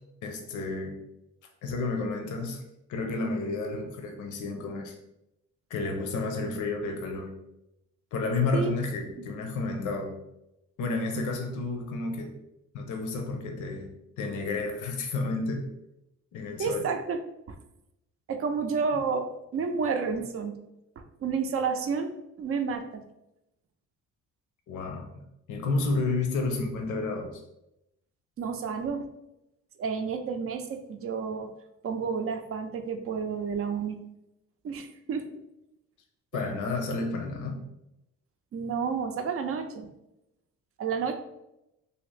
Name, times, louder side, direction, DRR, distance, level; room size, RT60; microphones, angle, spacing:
voice 1, 0.2-0.9 1.6-2.6 2.9-4.9 5.7-7.3 8.1-10.2 10.8-12.3 12.7-13.9 14.2-15.7 16.3-16.8 24.7-27.4 36.3-37.6, left 3 dB, 80° left, 4 dB, 0.7 m, -31 dB
voice 2, 16.6-17.2 17.5-17.6 18.3-20.6 21.2-22.1 22.4-23.0 28.4-29.0 29.8-31.5 31.8-34.0 34.6-35.3 36.3-36.4 38.5-39.9 40.8-41.1, right 5 dB, 50° right, 6 dB, 0.5 m, -30 dB
2.8 x 2.8 x 3.2 m, 0.88 s
cardioid pair, 90°, 30 cm